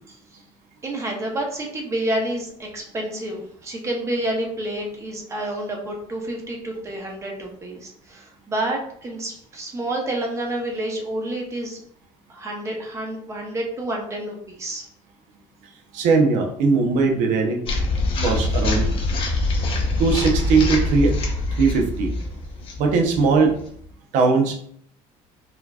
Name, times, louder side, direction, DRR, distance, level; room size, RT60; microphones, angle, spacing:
voice 1, 0.8-11.8 12.3-14.8, right 1 dB, 20° right, 1 dB, 0.7 m, -29 dB
voice 2, 15.9-17.6 18.2-18.9 20.0-21.1 21.6-22.1 22.8-23.5 24.1-24.5, right 4 dB, 65° right, 2 dB, 0.8 m, -19 dB
sound 1, 17.7-23.8, left 2 dB, 40° left, 0.8 m, -24 dB
4.3 x 2.8 x 2.3 m, 0.63 s
cardioid pair, 160°, 14 cm